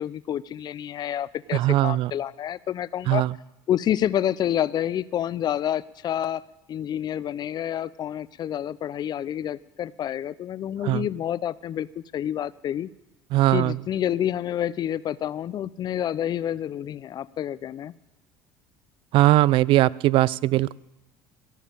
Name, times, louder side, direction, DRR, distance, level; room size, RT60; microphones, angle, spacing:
voice 1, 0.0-3.2 3.7-6.4 6.7-12.9 13.5-17.9, left 10 dB, 45° left, 19 dB, 0.5 m, -28 dB
voice 2, 1.5-2.1 3.1-3.3 10.8-11.1 13.3-13.8 19.1-20.7, right 16 dB, 60° right, 22 dB, 0.3 m, -20 dB
16.5 x 7.3 x 6.9 m, 0.97 s
supercardioid pair, 90°, 10 cm